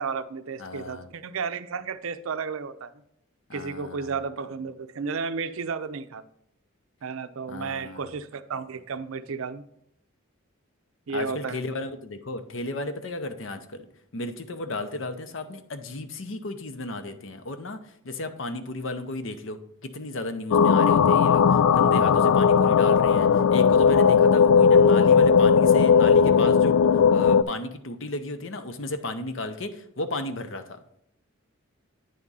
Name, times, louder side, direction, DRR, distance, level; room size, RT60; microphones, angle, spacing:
voice 1, 0.0-2.9 3.5-6.2 7.0-9.6 11.1-11.6, right 5 dB, 70° right, 11 dB, 0.5 m, -33 dB
voice 2, 0.6-1.0 3.5-4.2 7.5-8.1 11.1-13.9 14.1-26.8 27.1-30.8, left 2 dB, 60° left, 9 dB, 0.7 m, -34 dB
sound 1, 20.5-27.4, left 6 dB, 80° left, 0.3 m, -17 dB
9.3 x 3.6 x 5.4 m, 0.74 s
head